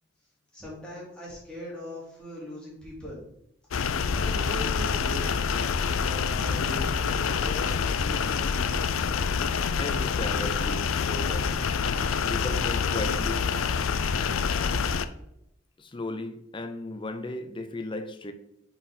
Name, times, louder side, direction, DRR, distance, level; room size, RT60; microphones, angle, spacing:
voice 1, 0.5-3.2 4.1-5.4 6.0-9.0, equal, 5° left, 2.6 m, -40 dB
sound 1, 3.7-15.1, left 6 dB, 80° left, 0.4 m, -27 dB
voice 2, 9.8-11.5 12.3-13.5 15.8-18.3, left 1 dB, 25° left, 0.5 m, -35 dB
6.0 x 4.4 x 4.9 m
head